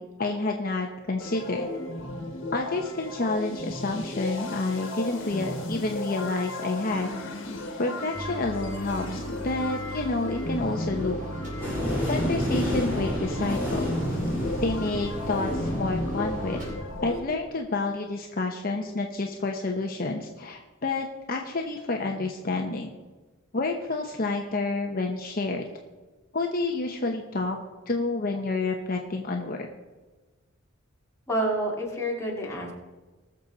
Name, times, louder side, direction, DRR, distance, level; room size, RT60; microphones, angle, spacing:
voice 1, 0.0-1.7 2.5-7.1 7.8-11.2 12.1-13.9 14.6-16.6 17.0-22.9 23.5-25.6 26.3-27.6 27.9-29.7, left 3 dB, 45° left, 2 dB, 0.9 m, -29 dB
sound 1, 1.2-17.2, left 1 dB, 60° left, 1.8 m, -34 dB
sound 2, 8.1-16.7, right 1 dB, 40° right, 3.4 m, -37 dB
sound 3, 11.6-17.2, equal, 10° right, 4.0 m, -31 dB
voice 2, 31.3-32.7, right 1 dB, 15° left, -3 dB, 2.4 m, -28 dB
20.0 x 6.9 x 4.0 m, 1.2 s
head